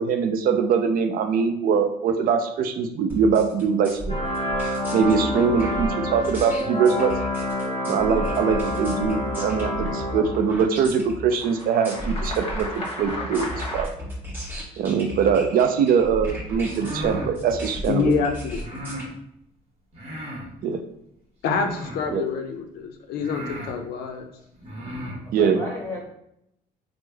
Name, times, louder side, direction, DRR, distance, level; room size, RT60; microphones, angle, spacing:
voice 1, 0.0-4.2 4.9-7.1 7.9-13.9 14.8-18.1 20.6-20.8 22.1-22.3 25.3-25.6, right 6 dB, 60° right, 7 dB, 0.4 m, -22 dB
sound 1, 3.1-19.0, equal, 15° right, 1.0 m, -35 dB
sound 2, 4.1-10.5 11.3-13.8, left 1 dB, 35° left, 1.0 m, -29 dB
sound 3, 16.6-17.3 18.6-19.1 19.9-20.5 21.5-22.1 22.8-22.9 23.2-23.8 24.6-25.2, equal, 35° right, 1.0 m, -35 dB
voice 2, 17.9-18.6 21.4-24.3, left 5 dB, 70° left, 5 dB, 0.4 m, -26 dB
voice 3, 25.0-26.1, left 1 dB, 15° left, -4 dB, 1.4 m, -35 dB
3.1 x 2.0 x 3.3 m, 0.78 s
cardioid pair, 110°, 17 cm